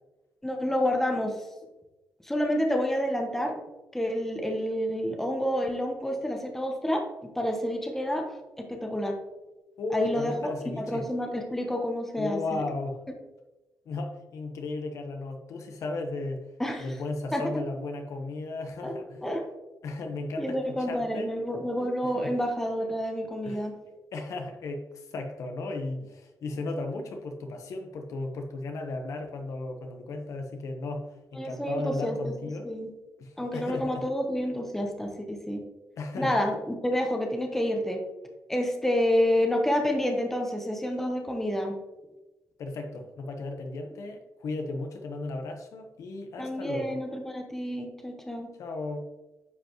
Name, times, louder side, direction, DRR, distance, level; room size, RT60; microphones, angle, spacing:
voice 1, 0.4-1.3 2.2-3.6 3.9-8.3 8.6-9.2 9.9-12.6 16.6-16.9 17.3-17.6 18.8-18.9 19.2-19.4 20.4-23.7 31.4-32.3 32.6-32.9 33.4-35.6 36.2-36.5 36.8-38.0 38.5-41.8 46.4-48.5, equal, 5° left, 2 dB, 1.1 m, -29 dB
voice 2, 9.8-11.0 12.2-13.0 13.8-16.4 16.8-19.3 19.8-21.3 22.0-22.3 23.4-32.7 33.2-34.1 36.0-36.4 42.6-47.0 48.6-49.1, left 2 dB, 70° left, 4 dB, 1.1 m, -35 dB
9.7 x 5.3 x 3.1 m, 1.0 s
cardioid pair, 135°, 6 cm